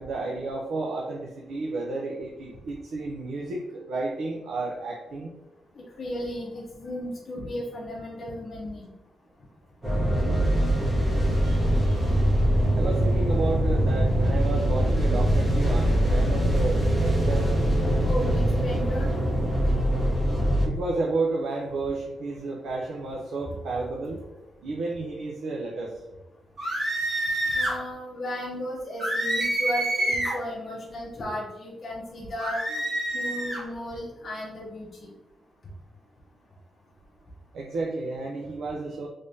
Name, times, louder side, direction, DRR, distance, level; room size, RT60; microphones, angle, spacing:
voice 1, 0.0-5.3 11.4-12.0 12.7-17.5 20.6-24.2 24.6-26.0 37.5-39.1, right 3 dB, 75° right, -1 dB, 0.5 m, -32 dB
voice 2, 6.0-8.9 18.0-19.1 19.8-19.9 27.5-32.8 33.1-35.1, left 1 dB, 35° left, -5 dB, 0.7 m, -34 dB
sound 1, 9.8-20.7, right 1 dB, 20° right, 0.9 m, -23 dB
sound 2, 26.6-27.8 29.0-30.4 32.4-33.6, right 1 dB, 45° right, 1.1 m, -27 dB
3.4 x 3.3 x 2.6 m, 1.0 s
wide cardioid pair, 165°, 0 cm